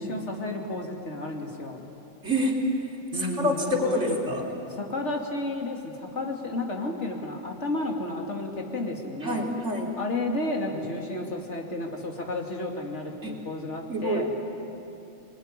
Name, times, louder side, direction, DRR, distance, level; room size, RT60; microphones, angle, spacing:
voice 1, 0.0-1.9 3.1-4.2 4.7-9.5 10.0-14.3, left 2 dB, 55° left, 1 dB, 3.0 m, -32 dB
voice 2, 2.2-2.6 3.1-4.5 9.2-9.9 13.2-13.4 13.9-14.4, equal, 55° right, -1 dB, 4.0 m, -27 dB
27.5 x 20.5 x 9.9 m, 2.8 s
omnidirectional pair, 1.5 m